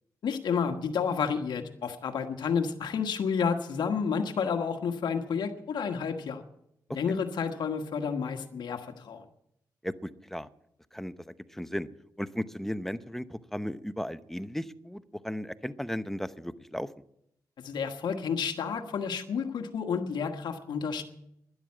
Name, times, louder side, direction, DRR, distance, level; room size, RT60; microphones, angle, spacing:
voice 1, 0.2-6.4 6.9-9.2 17.6-21.0, left 6 dB, 80° left, 4 dB, 1.4 m, -30 dB
voice 2, 9.8-10.5 10.9-11.9 12.2-16.9, equal, 5° left, 13 dB, 0.8 m, -36 dB
12.5 x 11.0 x 8.6 m, 0.77 s
cardioid pair, 65°, 8 cm